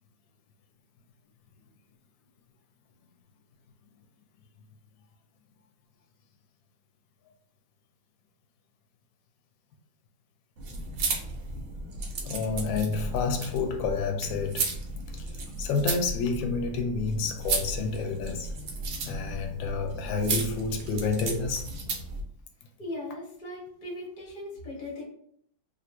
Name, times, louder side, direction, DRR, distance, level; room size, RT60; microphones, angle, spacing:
sound 1, 10.6-22.2, right 3 dB, 80° right, 1.3 m, -34 dB
voice 1, 12.3-14.7 15.1-15.2 15.6-18.5 19.0-21.7, left 4 dB, 90° left, 1.3 m, -29 dB
voice 2, 22.8-25.0, left 1 dB, 30° left, 1.1 m, -38 dB
3.2 x 2.5 x 2.9 m
omnidirectional pair, 2.0 m